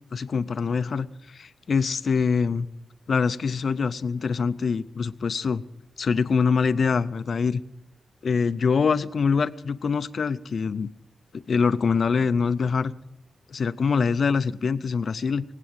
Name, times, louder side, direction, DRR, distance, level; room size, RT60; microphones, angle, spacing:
voice 1, 0.1-2.7 3.1-5.6 6.0-7.6 8.2-10.9 11.3-12.9 13.5-15.4, left 5 dB, 55° left, 13 dB, 0.5 m, -24 dB
22.0 x 8.3 x 7.9 m, 0.87 s
wide cardioid pair, 110°, 0 cm